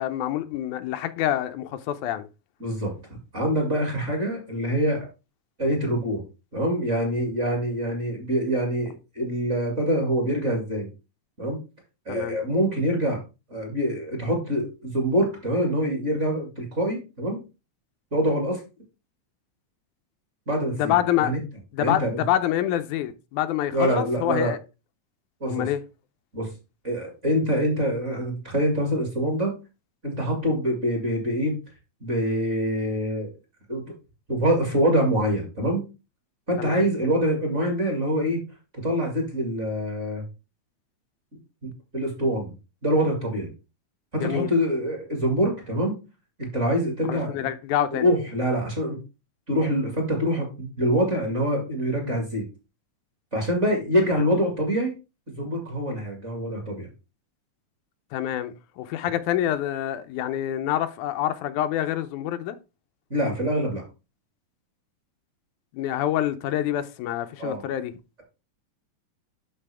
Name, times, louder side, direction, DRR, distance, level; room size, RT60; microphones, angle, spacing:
voice 1, 0.0-2.3 12.1-12.4 20.7-21.3 21.7-24.6 25.5-25.8 36.6-36.9 44.2-44.5 47.1-48.1 58.1-62.6 65.7-67.9, left 12 dB, 90° left, 2.1 m, -26 dB
voice 2, 2.6-2.9 3.3-5.1 5.6-6.2 6.5-10.9 11.4-11.6 12.1-13.2 13.5-17.4 18.1-18.6 20.5-20.9 21.2-21.4 21.8-22.2 23.7-24.5 25.4-25.7 26.3-26.5 26.8-29.6 30.0-31.6 32.0-33.3 33.7-33.8 34.3-35.8 36.5-38.4 38.8-40.2 41.6-42.5 42.8-43.5 44.1-45.9 46.4-47.5 48.0-49.0 49.5-52.5 53.3-54.9 55.3-56.9 63.1-63.8 67.4-67.6, equal, 25° right, 2.0 m, -25 dB
11.0 x 4.1 x 3.4 m
omnidirectional pair, 3.5 m